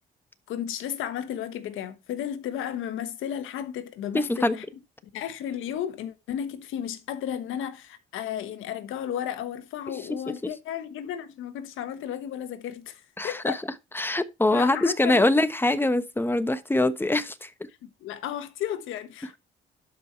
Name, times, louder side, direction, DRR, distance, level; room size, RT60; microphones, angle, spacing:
voice 1, 0.5-4.6 5.1-13.6 14.5-15.5 17.8-19.4, left 10 dB, 90° left, 1.3 m, -33 dB
voice 2, 13.2-13.6 13.9-17.5, left 2 dB, 10° left, 1.1 m, -23 dB
12.0 x 5.4 x 4.4 m
cardioid pair, 90°, 20 cm